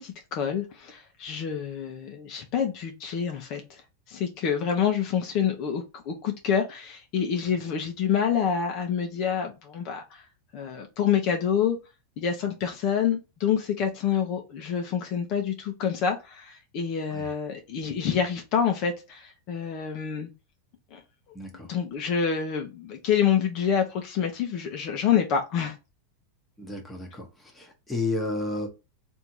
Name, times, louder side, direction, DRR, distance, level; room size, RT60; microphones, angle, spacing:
voice 1, 0.0-3.8 4.1-10.2 10.5-11.8 12.2-20.3 20.9-21.0 21.7-25.8, left 7 dB, 45° left, 0.9 m, -27 dB
voice 2, 21.3-21.7 26.6-28.7, left 2 dB, 5° left, 1.1 m, -32 dB
3.5 x 2.7 x 4.5 m
supercardioid pair, 145°, 0 cm